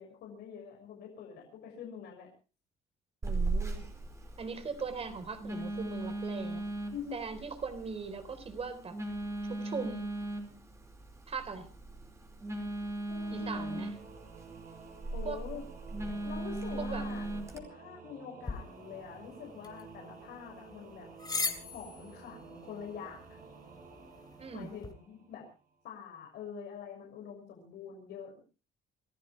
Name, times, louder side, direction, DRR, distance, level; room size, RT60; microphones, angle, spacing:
voice 1, 0.0-2.3 6.9-7.2 13.1-13.8 15.1-15.6 16.2-17.3 17.5-21.1 21.7-23.4 24.5-25.5 25.8-28.4, left 7 dB, 75° left, 1 dB, 6.5 m, -45 dB
Telephone, 3.2-17.6, right 2 dB, 15° right, 4.7 m, -38 dB
voice 2, 3.2-3.9 4.4-6.6 7.1-9.0 9.5-10.1 11.3-11.7 13.3-13.9 15.2-15.4 16.8-17.0 24.4-24.7, right 5 dB, 35° right, 10 dB, 4.1 m, -39 dB
Singing / Musical instrument, 13.2-25.6, right 5 dB, 55° right, 6.4 m, -52 dB
sound 1, 18.4-24.9, left 3 dB, 25° left, 3.3 m, -42 dB
28.5 x 14.0 x 3.4 m, 0.35 s
cardioid pair, 110°, 17 cm